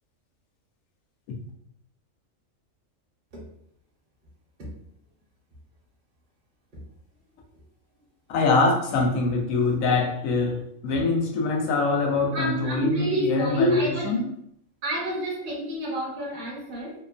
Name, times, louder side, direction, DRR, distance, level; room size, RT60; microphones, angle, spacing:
voice 1, 8.3-14.3, left 3 dB, 90° left, 1 dB, 1.0 m, -23 dB
voice 2, 12.3-14.0 14.8-16.9, right 1 dB, 45° right, -5 dB, 0.8 m, -30 dB
2.9 x 2.1 x 2.4 m, 0.72 s
omnidirectional pair, 1.4 m